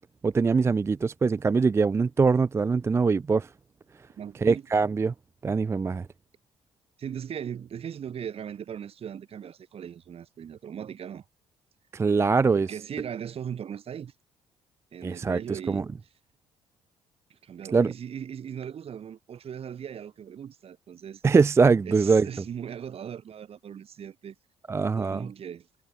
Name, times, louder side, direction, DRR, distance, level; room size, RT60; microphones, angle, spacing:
voice 1, 0.2-3.5 4.4-5.1 5.4-6.1 11.9-12.7 15.0-15.8 17.7-17.9 21.2-22.3 24.7-25.3, right 4 dB, 20° right, 0.3 m, -23 dB
voice 2, 4.2-4.6 7.0-11.2 12.5-14.1 14.9-15.8 17.3-21.2 21.8-24.3 24.9-25.7, right 8 dB, 50° right, 1.4 m, -38 dB
hypercardioid pair, 50°, 13 cm